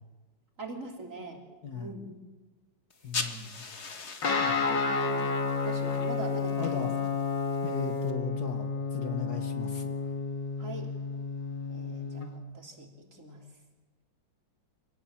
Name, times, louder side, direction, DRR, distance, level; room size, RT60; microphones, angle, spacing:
voice 1, 0.6-1.4 1.7-2.2 4.7-5.3 5.6-6.9 10.6-10.9 11.7-13.4, right 2 dB, 40° right, 2 dB, 3.5 m, -41 dB
voice 2, 1.6-2.0 3.0-3.6 4.4-4.7 6.6-7.0 7.6-10.0, left 5 dB, 55° left, 7 dB, 2.1 m, -38 dB
sound 1, 2.9-8.1, left 4 dB, 40° left, 1.7 m, -42 dB
Guitar, 4.2-12.3, left 4 dB, 70° left, 2.6 m, -31 dB
27.0 x 18.5 x 7.4 m, 1.2 s
omnidirectional pair, 2.0 m